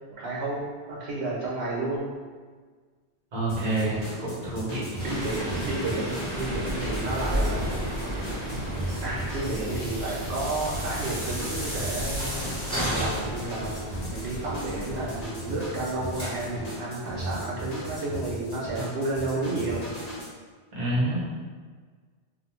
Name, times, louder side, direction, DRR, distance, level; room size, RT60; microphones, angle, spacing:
voice 1, 0.2-2.1 3.6-4.3 5.0-7.7 9.0-19.8, right 2 dB, 75° right, -6 dB, 0.8 m, -32 dB
voice 2, 3.3-4.8 20.8-21.2, right 1 dB, 45° right, -7 dB, 0.7 m, -27 dB
sound 1, 3.5-20.3, equal, 45° left, 0.6 m, -38 dB
sound 2, 5.0-16.5, equal, 5° left, 0.9 m, -35 dB
Thunder / Rain, 6.3-15.2, equal, 65° left, 0.9 m, -34 dB
2.5 x 2.0 x 2.9 m, 1.5 s
omnidirectional pair, 1.1 m